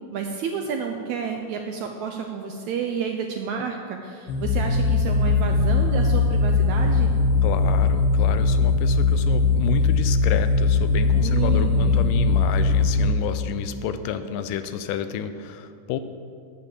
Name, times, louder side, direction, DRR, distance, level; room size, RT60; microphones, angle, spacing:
voice 1, 0.1-7.1 11.2-12.0, right 6 dB, 80° right, 3 dB, 1.7 m, -30 dB
sound 1, 4.3-13.1, left 3 dB, 60° left, 1.4 m, -20 dB
voice 2, 7.4-16.0, left 8 dB, 80° left, 10 dB, 2.2 m, -30 dB
9.7 x 8.7 x 7.5 m, 2.3 s
omnidirectional pair, 4.0 m